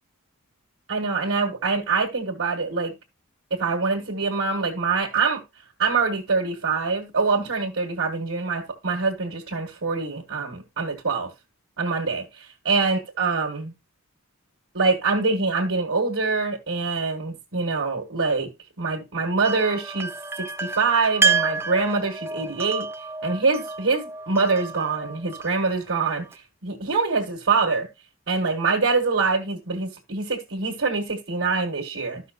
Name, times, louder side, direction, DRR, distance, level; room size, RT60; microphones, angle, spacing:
voice 1, 0.9-2.9 3.5-5.4 5.8-11.3 11.8-13.7 14.7-18.5 18.8-20.1 20.4-22.9 23.2-27.9 28.3-32.2, right 4 dB, 60° right, 1.6 m, -24 dB
sound 1, 19.4-26.3, right 4 dB, 10° right, 0.5 m, -29 dB
13.0 x 5.7 x 2.5 m
head